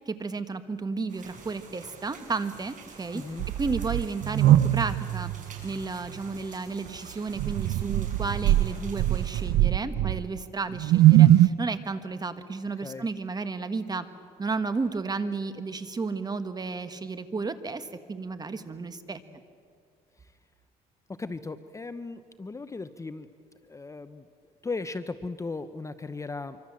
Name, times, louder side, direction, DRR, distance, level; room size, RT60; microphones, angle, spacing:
voice 1, 0.1-3.2 3.6-5.3 5.6-14.1 14.4-19.2, right 4 dB, 25° right, 10 dB, 1.5 m, -33 dB
sound 1, 1.1-9.4, right 5 dB, 50° right, 6.2 m, -49 dB
voice 2, 3.1-3.5 12.8-13.1 20.2-20.3 21.1-23.3 23.6-24.3 24.6-26.6, left 3 dB, 20° left, 11 dB, 0.8 m, -37 dB
sound 2, 3.4-5.8 6.1-6.2 7.4-10.4 10.7-11.5, right 13 dB, 80° right, 0.6 m, -21 dB
26.0 x 25.0 x 7.5 m, 2.1 s
cardioid pair, 110°, 17 cm